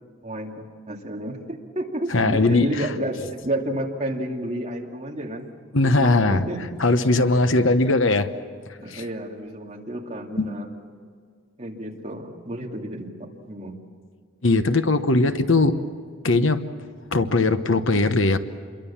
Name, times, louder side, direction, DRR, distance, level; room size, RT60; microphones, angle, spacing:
voice 1, 0.2-5.5 5.8-6.6 8.8-10.7 11.6-13.8, right 1 dB, 30° right, 0 dB, 2.6 m, -31 dB
voice 2, 2.1-2.9 5.7-6.4 6.8-8.3 8.9-9.0 10.4-10.5 14.4-15.8 16.2-16.6 17.1-18.4, left 2 dB, 65° left, 9 dB, 1.1 m, -19 dB
27.5 x 22.5 x 7.3 m, 2.1 s
head